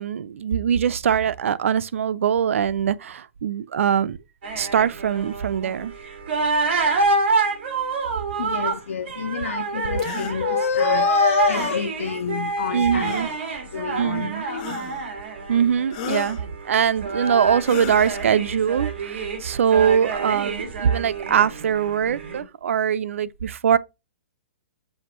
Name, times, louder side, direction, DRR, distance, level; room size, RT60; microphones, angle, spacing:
voice 1, 0.0-4.2 4.6-5.9 12.7-13.3 14.0-14.4 15.5-16.4 16.7-23.8, right 8 dB, 80° right, 0.4 m, -22 dB
sound 1, 4.4-22.4, right 3 dB, 55° right, 1.8 m, -27 dB
voice 2, 8.4-13.3 13.7-14.8, left 7 dB, 90° left, 0.5 m, -27 dB
sound 2, 10.0-10.4 11.5-11.8 13.0-13.5 14.6-15.1 15.9-16.4 17.6-18.3, left 9 dB, 35° left, 0.9 m, -34 dB
6.4 x 4.9 x 3.0 m
hypercardioid pair, 160°, 7 cm